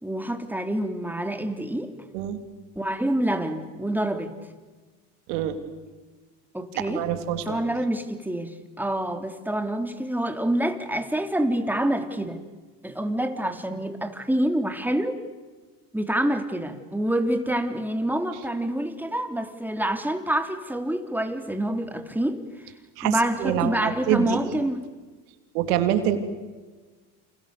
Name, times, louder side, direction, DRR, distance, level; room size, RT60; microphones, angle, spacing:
voice 1, 0.0-1.9 2.7-4.3 6.5-7.1 7.5-12.4 12.8-15.2 15.9-22.4 23.0-24.8, right 1 dB, 5° right, 7 dB, 3.4 m, -27 dB
voice 2, 6.7-7.6 23.0-24.5 25.5-26.2, right 11 dB, 80° right, 8 dB, 3.2 m, -25 dB
30.0 x 28.5 x 6.9 m, 1.3 s
hypercardioid pair, 80°, 46 cm